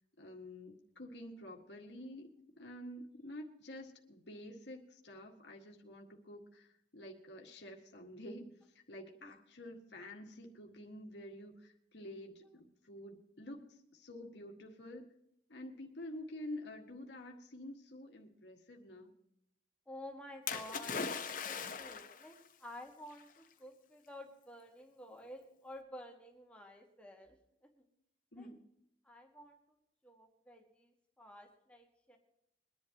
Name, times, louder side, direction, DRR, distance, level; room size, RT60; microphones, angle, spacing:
voice 1, 0.2-8.5 8.9-15.1 15.5-19.1 28.3-28.6, left 1 dB, 85° left, 1 dB, 1.8 m, -49 dB
voice 2, 19.9-21.0 21.4-27.4 27.6-27.8 28.3-28.5 29.0-29.6 30.0-32.2, left 1 dB, 5° left, 1 dB, 1.6 m, -52 dB
Splash splatter, 20.5-22.3 23.2-23.3, left 5 dB, 50° left, 1.1 m, -39 dB
22.5 x 11.0 x 3.0 m, 0.77 s
head